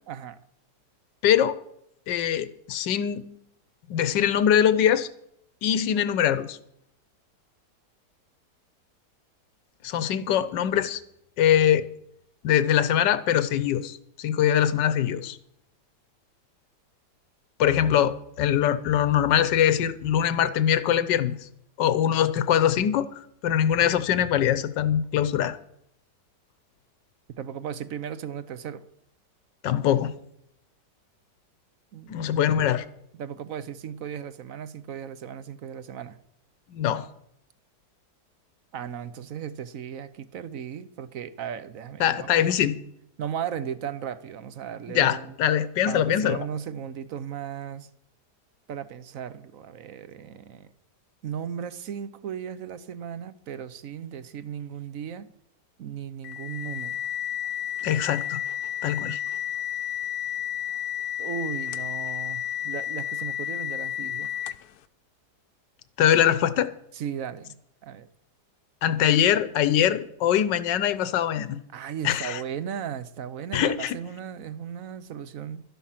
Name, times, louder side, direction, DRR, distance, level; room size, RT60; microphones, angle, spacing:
voice 1, 0.1-0.4 27.4-28.9 31.9-32.3 33.1-36.2 38.7-42.6 43.2-45.4 45.9-47.9 48.7-50.7 51.2-55.3 55.8-57.0 61.2-64.3 66.9-68.1 71.7-75.6, right 8 dB, 60° right, 14 dB, 1.1 m, -36 dB
voice 2, 1.2-1.6 2.1-3.2 3.9-5.1 5.6-6.6 9.8-11.0 11.4-11.9 12.4-15.4 17.6-21.4 21.8-23.1 23.4-25.6 29.6-30.1 32.1-32.8 36.7-37.1 42.0-42.7 44.9-46.4 57.8-58.4 58.8-59.2 66.0-66.7 68.8-71.6 72.0-72.4 73.5-73.9, left 10 dB, 85° left, 14 dB, 1.5 m, -22 dB
sound 1, 56.2-64.8, left 10 dB, 70° left, 1.1 m, -32 dB
12.5 x 11.5 x 5.8 m, 0.72 s
omnidirectional pair, 1.9 m